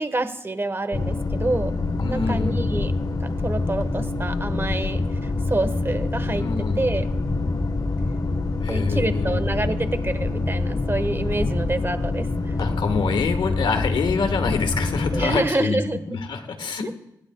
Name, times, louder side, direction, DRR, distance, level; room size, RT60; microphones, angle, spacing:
voice 1, 0.0-1.7 2.1-2.9 3.2-6.5 6.8-7.1 8.7-12.6 15.1-16.0, right 2 dB, 30° right, 11 dB, 1.3 m, -27 dB
sound 1, 0.9-15.4, left 3 dB, 50° left, 1.3 m, -26 dB
voice 2, 2.0-2.8 6.4-6.8 8.6-9.4 12.6-16.9, left 4 dB, 75° left, 6 dB, 1.4 m, -26 dB
22.5 x 9.9 x 2.3 m, 0.81 s
supercardioid pair, 40°, 8 cm